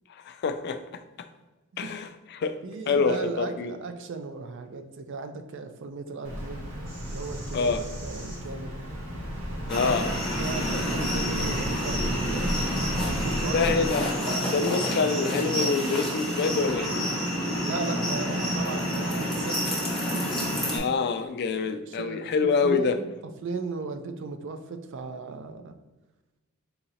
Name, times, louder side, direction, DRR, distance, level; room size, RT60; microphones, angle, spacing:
voice 1, 0.1-1.0 1.8-2.6 2.9-3.7 7.5-7.8 9.7-10.2 13.5-14.1 14.5-17.0 20.7-22.9, left 4 dB, 50° left, 9 dB, 0.3 m, -26 dB
voice 2, 2.6-6.6 7.1-8.8 9.9-13.6 17.6-20.5 21.5-22.3 22.6-23.1 23.4-25.7, right 4 dB, 60° right, 8 dB, 0.4 m, -37 dB
Bird vocalization bird call bird song, 6.2-13.9, equal, 90° right, 1.3 m, -33 dB
sound 1, 9.7-20.8, equal, ahead, 1.0 m, -28 dB
3.9 x 2.8 x 4.2 m, 1.1 s
head